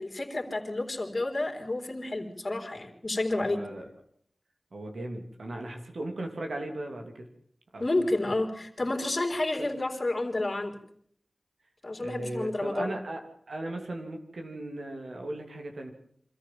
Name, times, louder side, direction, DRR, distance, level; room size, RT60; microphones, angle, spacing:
voice 1, 0.0-3.6 7.8-10.8 11.8-12.9, left 2 dB, 45° left, 4 dB, 3.7 m, -30 dB
voice 2, 3.4-3.9 4.7-7.3 7.7-7.8 9.6-9.7 12.0-13.2 13.5-15.9, right 1 dB, 80° right, 4 dB, 2.9 m, -37 dB
25.0 x 14.0 x 7.6 m, 0.66 s
wide cardioid pair, 55°, 0 cm